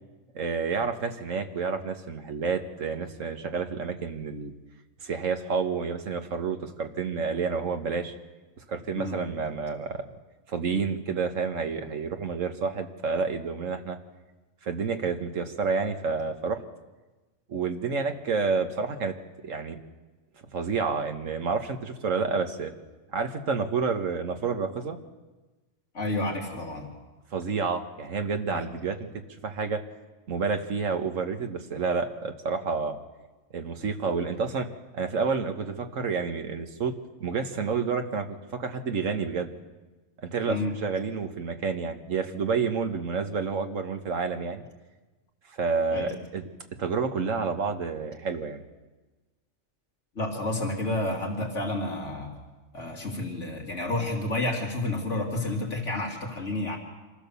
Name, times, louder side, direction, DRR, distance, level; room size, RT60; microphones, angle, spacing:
voice 1, 0.4-4.5 5.0-8.1 8.6-10.2 10.5-14.0 14.6-16.6 17.5-19.1 19.4-19.8 20.5-22.7 23.1-25.0 27.3-29.8 30.3-33.0 33.5-34.7 34.9-36.9 37.2-39.5 40.2-44.7 45.5-46.4 46.8-48.6, right 5 dB, 90° right, 6 dB, 1.7 m, -29 dB
voice 2, 25.9-27.0 28.5-28.7 40.5-40.7 45.9-46.1 50.1-52.3 52.7-56.8, left 2 dB, 70° left, 0 dB, 2.8 m, -30 dB
26.0 x 15.0 x 7.0 m, 1.2 s
omnidirectional pair, 1.3 m